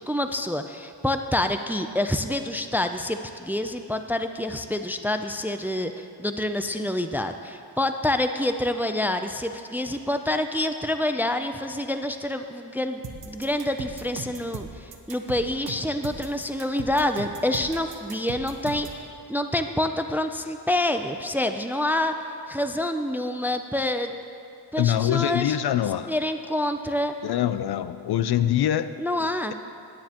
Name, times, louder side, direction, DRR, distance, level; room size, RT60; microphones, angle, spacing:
voice 1, 0.1-22.2 22.5-24.1 24.7-25.6 26.1-27.1 29.0-29.5, left 1 dB, 5° right, 7 dB, 0.3 m, -27 dB
sound 1, 13.0-19.0, right 6 dB, 65° right, 1.0 m, -38 dB
voice 2, 24.8-26.1 27.2-28.9, left 11 dB, 70° left, 13 dB, 0.5 m, -24 dB
17.0 x 9.7 x 2.9 m, 2.6 s
wide cardioid pair, 105°, 40 cm